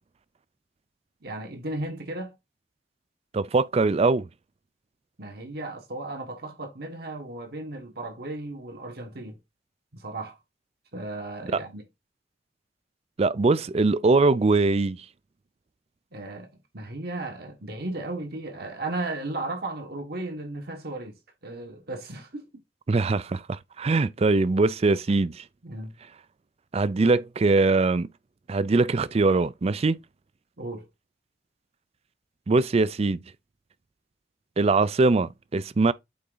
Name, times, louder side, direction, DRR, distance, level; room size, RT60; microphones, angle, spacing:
voice 1, 1.2-2.3 5.2-9.4 9.9-10.4 10.9-11.8 16.1-16.5 16.7-21.2 21.4-22.5 25.6-25.9 30.6-30.9, right 2 dB, 60° right, 1.4 m, -35 dB
voice 2, 3.3-4.3 13.2-15.0 22.9-25.4 26.7-28.1 28.5-30.0 32.5-33.2 34.6-35.9, right 3 dB, 35° right, 0.4 m, -22 dB
8.5 x 3.6 x 3.9 m
head